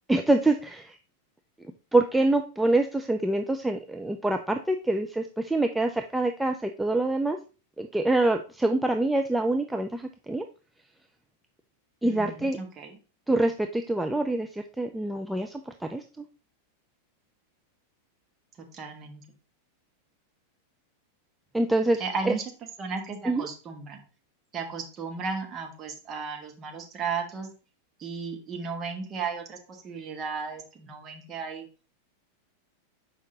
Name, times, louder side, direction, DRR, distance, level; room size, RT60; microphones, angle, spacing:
voice 1, 0.1-1.0 1.9-7.4 7.8-10.4 12.0-12.6 13.3-16.0 21.5-22.0 22.3-22.4 23.3-23.5, right 2 dB, 5° right, 5 dB, 0.4 m, -25 dB
voice 2, 12.0-13.0 18.7-19.2 22.0-22.4 22.8-24.0 24.5-27.5 28.0-31.6, right 5 dB, 30° right, 3 dB, 1.4 m, -35 dB
6.5 x 4.7 x 3.9 m, 0.35 s
figure-of-eight pair, 90°, 0 cm